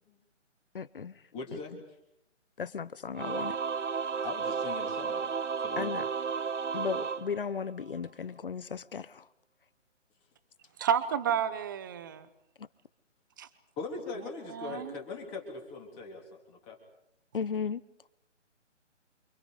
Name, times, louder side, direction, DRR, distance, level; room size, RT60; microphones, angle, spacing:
voice 1, 0.7-1.2 2.6-3.6 5.8-6.0 6.7-9.3 12.6-12.7 17.3-17.8, left 6 dB, 45° left, 0.9 m, -35 dB
voice 2, 1.3-1.7 4.2-5.3 5.6-6.1 13.8-16.8, left 4 dB, 15° left, 3.4 m, -41 dB
Singing / Musical instrument, 3.1-8.0, right 6 dB, 70° right, 1.0 m, -33 dB
voice 3, 10.8-12.3 13.4-13.5 14.5-15.0, right 8 dB, 15° right, 0.9 m, -30 dB
29.0 x 25.0 x 5.1 m
figure-of-eight pair, 145°, 37 cm